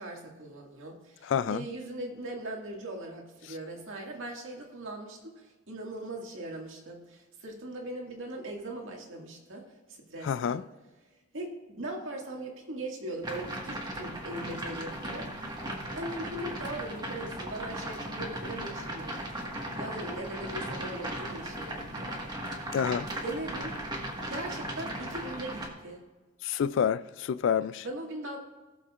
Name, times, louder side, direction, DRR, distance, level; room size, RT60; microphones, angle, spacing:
voice 1, 0.0-5.3 5.7-9.6 9.9-10.6 11.3-15.3 15.9-19.2 19.8-22.1 23.2-23.7 24.3-26.0 27.8-28.4, right 1 dB, 75° right, 2.0 m, -39 dB
voice 2, 1.2-1.7 10.2-10.6 22.7-23.1 26.4-27.9, left 7 dB, 65° left, 0.3 m, -28 dB
sound 1, 13.2-25.7, right 1 dB, 20° right, 1.6 m, -37 dB
18.0 x 7.0 x 2.5 m
head